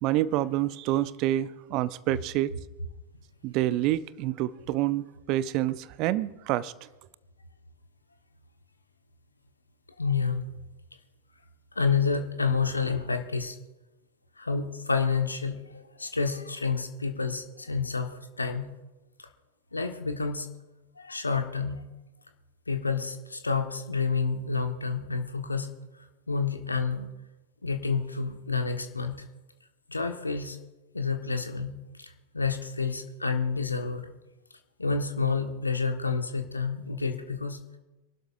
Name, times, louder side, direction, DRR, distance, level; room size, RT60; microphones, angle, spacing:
voice 1, 0.0-2.5 3.4-6.7, right 14 dB, 40° right, 0.6 m, -27 dB
voice 2, 10.0-10.5 11.7-13.6 14.4-18.6 19.7-20.5 21.0-21.8 22.7-25.7 26.3-27.1 27.6-29.2 29.9-30.6 30.9-31.7 32.0-32.1 32.3-34.1 34.8-37.8, left 5 dB, 80° left, 1.5 m, -29 dB
27.0 x 12.0 x 2.6 m
figure-of-eight pair, 90°, 0 cm